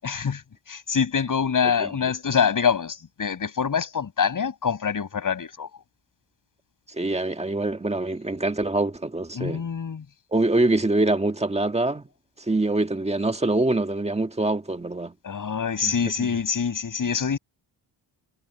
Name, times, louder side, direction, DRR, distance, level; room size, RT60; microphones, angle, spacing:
voice 1, 0.0-5.7 9.4-10.0 15.2-17.4, left 6 dB, 45° left, 7.4 m, -25 dB
voice 2, 6.9-9.6 10.3-12.0 12.5-15.1 15.8-15.9 16.2-16.3, right 2 dB, 15° right, 1.6 m, -24 dB
cardioid pair, 125°, 45 cm